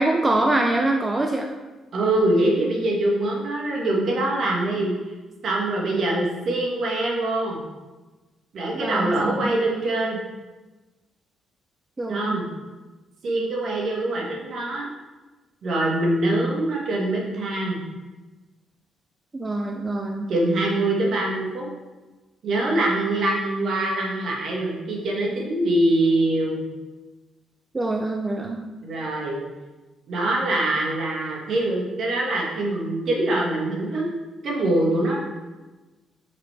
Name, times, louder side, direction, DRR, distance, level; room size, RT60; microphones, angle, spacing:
voice 1, 0.0-1.5 8.7-9.6 12.0-12.4 19.3-20.3 27.7-28.6, right 2 dB, 20° right, 2 dB, 0.5 m, -24 dB
voice 2, 1.9-4.9 5.4-7.6 8.5-10.2 12.1-12.4 13.2-14.9 15.6-17.8 20.3-21.7 22.4-26.6 28.8-29.4 30.1-34.1 34.4-35.2, right 1 dB, 60° right, -2 dB, 1.5 m, -23 dB
5.8 x 5.0 x 3.3 m, 1.2 s
cardioid pair, 90°, 0 cm